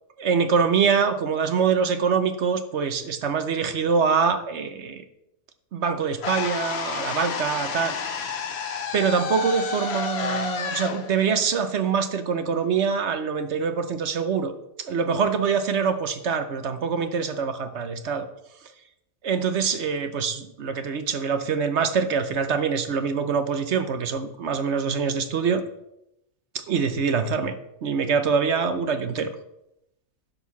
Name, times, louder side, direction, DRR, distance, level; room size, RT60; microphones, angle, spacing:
voice 1, 0.2-5.0 5.7-7.9 8.9-14.5 14.8-18.3 19.2-25.6 26.5-27.5 27.8-29.3, right 6 dB, 60° right, 9 dB, 1.0 m, -24 dB
sound 1, 6.2-12.3, left 6 dB, 55° left, 1.1 m, -30 dB
11.0 x 4.7 x 7.0 m, 0.83 s
omnidirectional pair, 1.4 m